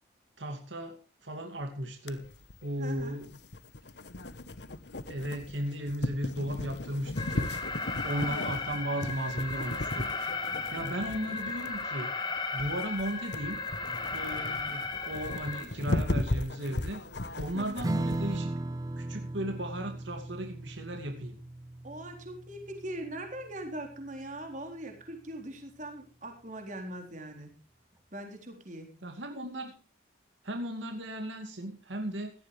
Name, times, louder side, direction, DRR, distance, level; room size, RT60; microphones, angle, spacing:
voice 1, 0.4-2.3 2.6-3.3 5.1-7.5 8.0-12.1 12.5-13.6 14.1-17.0 17.4-18.5 19.0-21.4 29.0-29.7 30.4-32.3, right 1 dB, 75° right, 4 dB, 2.5 m, -36 dB
sound 1, 2.1-18.4, left 1 dB, 60° left, 1.2 m, -37 dB
voice 2, 2.8-3.2 8.2-8.5 8.9-9.0 17.5-17.9 21.8-27.5 28.1-28.9, right 1 dB, 40° right, 3 dB, 4.3 m, -41 dB
Alarm, 7.2-15.6, left 4 dB, 25° left, 2.2 m, -35 dB
Strum, 17.8-24.7, right 2 dB, 20° right, 0.6 m, -37 dB
17.5 x 14.0 x 3.4 m, 0.34 s
head